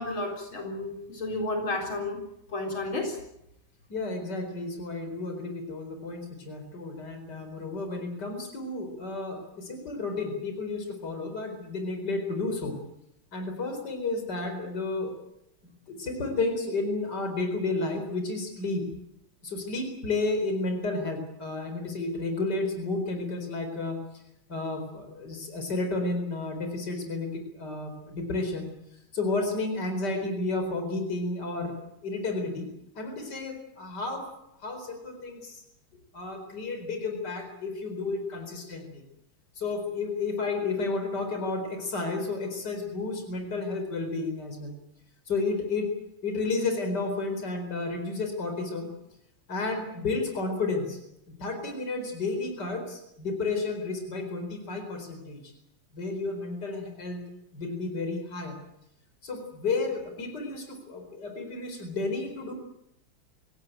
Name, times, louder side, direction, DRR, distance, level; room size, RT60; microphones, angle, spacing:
voice 1, 0.0-2.2 2.5-3.2, left 2 dB, 80° left, 3 dB, 4.9 m, -32 dB
voice 2, 3.9-12.8 13.3-15.2 15.9-18.8 19.4-24.0 24.5-28.7 29.1-31.8 32.0-32.7 32.9-34.3 34.6-35.6 36.1-39.0 39.6-44.7 45.3-46.0 46.2-48.9 49.5-51.0 51.4-55.5 55.9-57.2 57.5-58.6 59.2-62.5, left 3 dB, 55° left, 5 dB, 4.9 m, -32 dB
25.5 x 16.5 x 9.1 m, 0.79 s
omnidirectional pair, 2.2 m